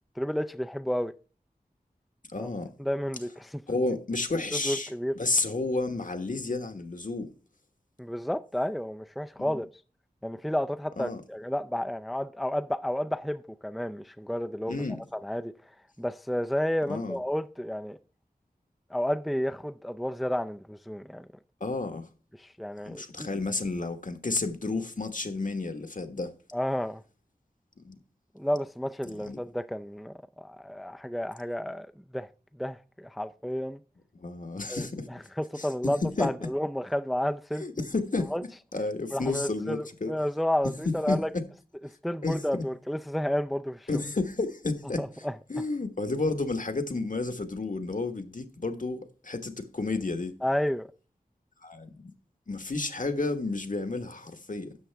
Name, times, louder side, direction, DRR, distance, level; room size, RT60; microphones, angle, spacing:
voice 1, 0.2-1.1 2.4-2.5 2.8-3.6 4.5-5.1 8.0-9.7 10.2-14.8 15.1-15.5 16.0-18.0 18.9-21.3 22.4-23.3 26.5-27.0 28.4-32.3 32.6-33.8 34.7-37.6 38.3-38.4 39.1-41.3 42.0-43.9 45.0-45.3 50.4-50.9, equal, ahead, 0.4 m, -31 dB
voice 2, 2.3-2.7 3.7-7.3 9.4-9.6 11.0-11.2 14.7-15.0 16.9-17.2 21.6-22.1 22.8-26.3 27.8-28.0 29.0-29.4 34.1-35.1 35.5-35.7 36.0-36.3 37.6-38.3 38.7-40.1 40.8-41.4 42.2-42.6 43.9-45.0 45.5-50.4 51.6-52.1 52.5-54.8, left 3 dB, 55° left, 1.4 m, -31 dB
12.5 x 7.8 x 3.4 m
wide cardioid pair, 45°, 16 cm